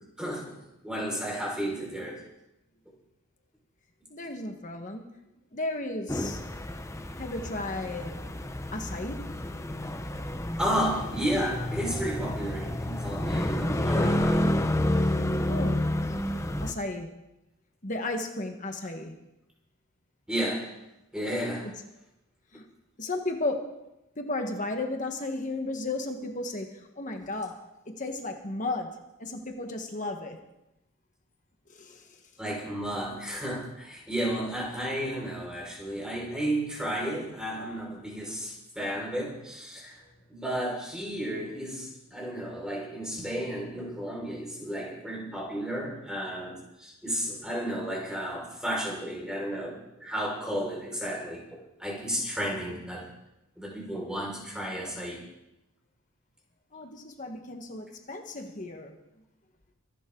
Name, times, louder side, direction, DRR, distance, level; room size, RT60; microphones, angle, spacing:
voice 1, 0.2-2.2 10.6-14.5 20.3-20.7 21.1-21.7 32.4-40.0 40.3-51.4 51.8-53.1 53.6-55.2, equal, 5° right, -3 dB, 5.1 m, -33 dB
voice 2, 4.1-5.1 5.5-6.4 7.2-8.2 8.7-9.3 15.5-15.8 16.6-17.1 17.8-19.2 22.5-22.6 23.0-23.7 24.2-30.4 31.7-32.0 56.7-58.9, left 2 dB, 40° left, 4 dB, 1.4 m, -34 dB
sound 1, 6.1-16.7, left 1 dB, 15° left, 0.8 m, -29 dB
25.0 x 11.5 x 3.9 m, 0.92 s
head